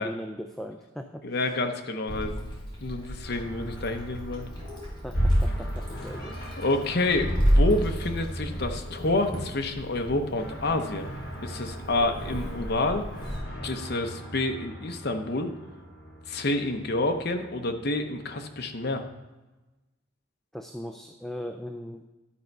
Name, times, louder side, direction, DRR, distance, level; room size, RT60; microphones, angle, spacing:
voice 1, 0.0-1.2 5.0-6.4 20.5-22.1, equal, ahead, 4 dB, 0.4 m, -38 dB
voice 2, 1.2-2.5 2.8-4.4 6.6-11.1 11.4-13.0 13.6-15.5 16.3-19.0, left 2 dB, 55° left, 5 dB, 0.8 m, -28 dB
Meow, 2.1-13.4, equal, 25° left, 3.5 m, -30 dB
sound 1, 3.2-19.2, equal, 75° left, 3.5 m, -42 dB
11.5 x 4.5 x 5.4 m, 1.1 s
head